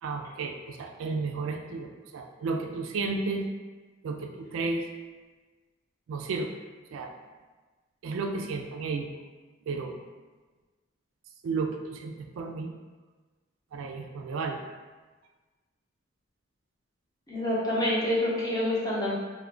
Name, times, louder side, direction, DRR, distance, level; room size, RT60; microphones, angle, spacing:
voice 1, 0.0-3.4 4.0-4.9 6.1-6.5 6.9-7.2 8.0-9.1 9.7-9.9 11.4-12.7 13.7-14.6, right 4 dB, 85° right, 4 dB, 0.3 m, -33 dB
voice 2, 17.3-19.2, left 1 dB, 20° left, -7 dB, 0.6 m, -27 dB
2.4 x 2.1 x 3.2 m, 1.3 s
head